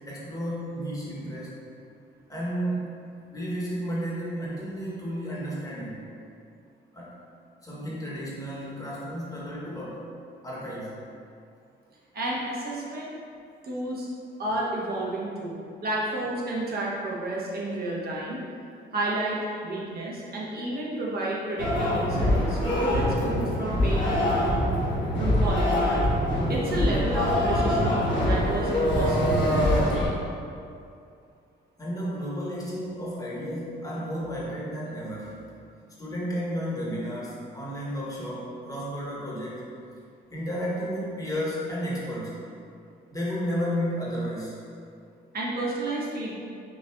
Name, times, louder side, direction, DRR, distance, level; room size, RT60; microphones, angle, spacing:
voice 1, 0.0-1.6 2.3-2.9 3.3-6.0 6.9-7.2 7.6-10.1 10.4-11.0 31.8-35.4 36.0-39.6 40.3-42.4 43.1-44.5, equal, 15° left, -7 dB, 1.1 m, -32 dB
voice 2, 12.1-13.2 13.6-14.1 14.4-18.4 18.9-24.6 25.2-26.1 26.5-28.0 28.3-29.8 45.3-46.4, right 1 dB, 50° right, -5 dB, 0.9 m, -31 dB
sound 1, 21.6-30.1, left 1 dB, 75° left, 1.2 m, -24 dB
5.5 x 2.5 x 2.3 m, 2.5 s
cardioid pair, 90°, 20 cm